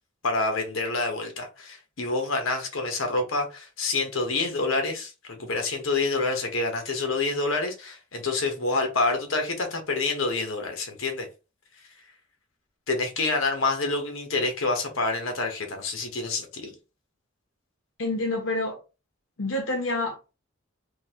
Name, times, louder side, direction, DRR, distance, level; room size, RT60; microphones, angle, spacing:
voice 1, 0.2-11.3 12.9-16.7, left 3 dB, 90° left, 1.1 m, -27 dB
voice 2, 18.0-18.8 19.4-20.3, left 2 dB, 70° left, 0.8 m, -28 dB
3.9 x 2.9 x 2.9 m
head